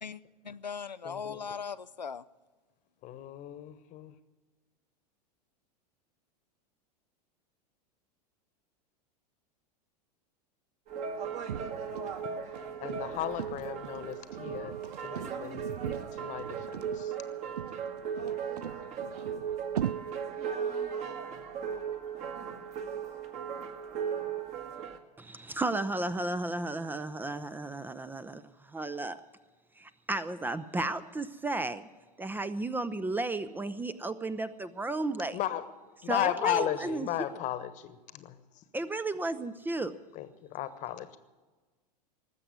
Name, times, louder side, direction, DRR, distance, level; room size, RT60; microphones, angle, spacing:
voice 1, 0.0-2.2, left 6 dB, 90° left, 13 dB, 0.4 m, -39 dB
voice 2, 1.0-1.4 3.0-4.1 12.8-14.8 15.0-17.1 35.3-35.6 36.0-38.4 40.1-41.2, left 12 dB, 35° left, 13 dB, 1.2 m, -35 dB
sound 1, 10.9-25.0, right 7 dB, 35° right, 1.6 m, -37 dB
sound 2, 11.5-19.9, right 10 dB, 70° right, 0.5 m, -40 dB
voice 3, 25.2-29.2 29.8-31.9 32.2-35.4 36.1-37.1 38.7-39.9, right 2 dB, 10° right, 14 dB, 0.6 m, -34 dB
19.5 x 7.8 x 9.5 m, 1.3 s
figure-of-eight pair, 90°, 21 cm